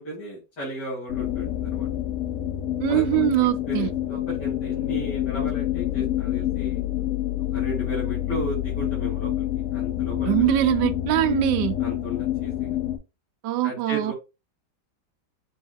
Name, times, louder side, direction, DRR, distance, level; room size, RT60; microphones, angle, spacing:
voice 1, 0.0-1.9 2.9-3.3 3.7-6.8 7.5-9.4 9.7-10.6 11.8-12.7 13.6-14.1, right 1 dB, 75° left, 3.0 m, -35 dB
sound 1, 1.1-13.0, left 12 dB, 60° left, 0.9 m, -27 dB
voice 2, 2.8-3.9 10.3-11.7 13.4-14.1, right 15 dB, 80° right, 1.2 m, -22 dB
6.1 x 3.5 x 2.2 m
omnidirectional pair, 1.8 m